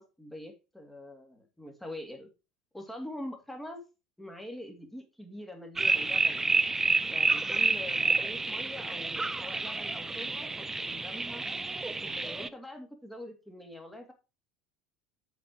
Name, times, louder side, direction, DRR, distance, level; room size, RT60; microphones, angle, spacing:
voice 1, 0.0-2.3 2.7-3.8 4.2-6.6 7.0-11.4 12.0-14.1, left 1 dB, 5° left, 4 dB, 2.1 m, -44 dB
sound 1, 5.8-12.5, right 3 dB, 15° right, 0.5 m, -29 dB
7.5 x 4.6 x 4.8 m, 0.28 s
hypercardioid pair, 75°, 3 cm